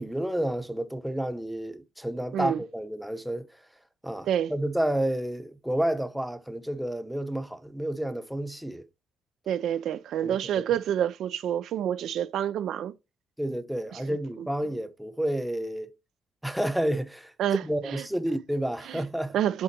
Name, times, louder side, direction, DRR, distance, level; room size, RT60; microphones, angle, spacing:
voice 1, 0.0-3.5 4.0-8.9 10.2-10.6 13.4-15.9 16.4-17.3 17.6-19.3, right 1 dB, 5° right, 0.8 m, -30 dB
voice 2, 9.5-12.9 13.9-14.5 17.4-18.0 18.9-19.0 19.3-19.6, right 10 dB, 75° right, 0.5 m, -28 dB
7.2 x 3.8 x 4.5 m
cardioid pair, 90°, 0 cm